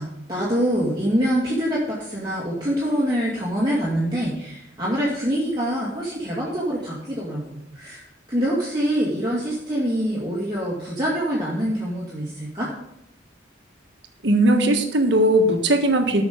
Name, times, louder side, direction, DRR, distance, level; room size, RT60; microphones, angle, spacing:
voice 1, 0.0-12.7, equal, 20° right, -6 dB, 2.1 m, -25 dB
voice 2, 14.2-16.2, right 1 dB, 70° right, 4 dB, 1.6 m, -18 dB
12.5 x 6.3 x 5.1 m, 0.86 s
head